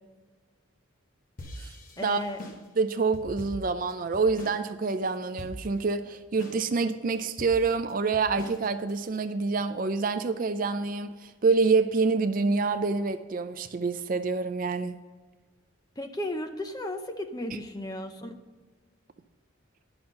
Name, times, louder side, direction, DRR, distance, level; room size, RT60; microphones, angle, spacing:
sound 1, 1.4-4.6 4.9-5.0 5.4-5.9 6.4-6.9 7.4-9.2, left 1 dB, 40° left, 1.0 m, -42 dB
voice 1, 2.0-2.4 16.0-18.4, left 1 dB, 20° left, 0.6 m, -34 dB
voice 2, 2.8-14.9, right 4 dB, 40° right, 0.4 m, -27 dB
10.5 x 5.9 x 5.3 m
head